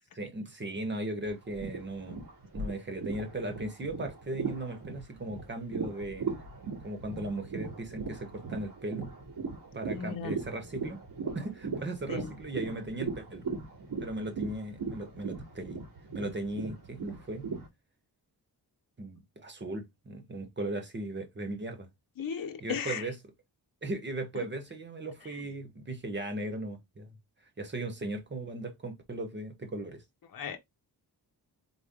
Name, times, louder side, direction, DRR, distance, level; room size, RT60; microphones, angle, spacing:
voice 1, 0.2-2.2 2.5-6.4 6.8-9.1 9.7-11.0 11.3-13.4 14.0-15.8 16.1-17.5 19.0-21.9 22.6-23.1 23.8-27.1 27.6-30.0, right 2 dB, 25° right, 1.0 m, -37 dB
sound 1, 1.3-17.7, right 4 dB, 80° right, 2.5 m, -38 dB
voice 2, 9.9-10.4 12.1-12.3 22.2-23.0 30.3-30.6, left 7 dB, 55° left, 0.8 m, -36 dB
4.1 x 3.2 x 3.5 m
wide cardioid pair, 165°, 40 cm